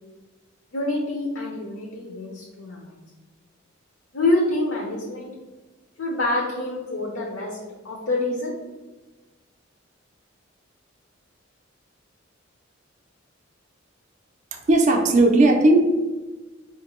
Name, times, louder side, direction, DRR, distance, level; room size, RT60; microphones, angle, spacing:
voice 1, 0.7-3.0 4.1-5.3 6.0-7.6 7.8-8.5, left 2 dB, 70° left, -1 dB, 0.6 m, -26 dB
voice 2, 14.5-15.8, right 2 dB, 35° right, 3 dB, 0.4 m, -17 dB
4.3 x 2.5 x 3.0 m, 1.2 s
head